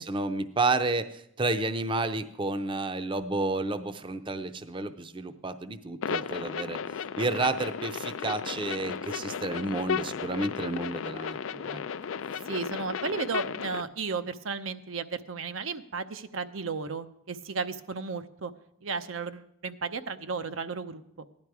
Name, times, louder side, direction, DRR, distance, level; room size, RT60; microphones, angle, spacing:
voice 1, 0.0-6.8 7.2-11.8 12.3-12.4, right 2 dB, 25° right, 10 dB, 0.5 m, -31 dB
sound 1, 6.0-13.8, left 7 dB, 80° left, 0.4 m, -34 dB
voice 2, 12.5-18.5 18.8-21.0, right 4 dB, 85° right, 10 dB, 0.7 m, -34 dB
15.5 x 10.5 x 4.8 m, 0.74 s
head